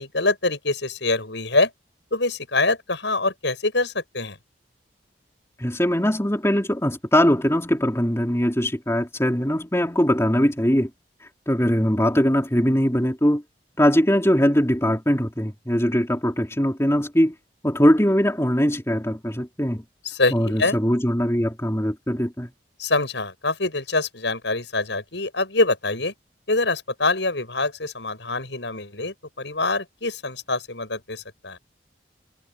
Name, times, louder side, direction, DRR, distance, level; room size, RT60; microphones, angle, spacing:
voice 1, 0.0-1.7 2.1-4.4 20.1-20.8 22.8-26.1 26.5-31.6, left 2 dB, 75° left, 7.0 m, -25 dB
voice 2, 5.6-10.9 11.5-13.4 13.8-17.3 17.6-19.8 20.3-22.5, equal, 15° left, 3.5 m, -21 dB
head